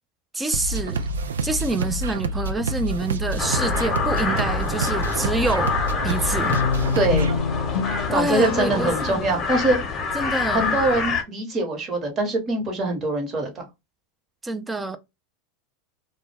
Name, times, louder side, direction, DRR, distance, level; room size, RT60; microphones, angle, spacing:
voice 1, 0.3-1.1 1.4-5.7 6.0-6.6 8.1-9.2 10.1-10.8 14.4-15.0, right 2 dB, 10° right, 0.4 m, -26 dB
sound 1, 0.5-7.4, right 2 dB, 90° right, 0.3 m, -27 dB
sound 2, 3.4-11.2, left 4 dB, 30° left, 0.8 m, -26 dB
Guitar, 6.5-9.8, left 6 dB, 75° left, 0.4 m, -27 dB
voice 2, 6.9-7.3 8.1-9.8 10.5-13.6, right 2 dB, 35° right, 1.0 m, -23 dB
2.2 x 2.1 x 3.2 m
hypercardioid pair, 105°, 0 cm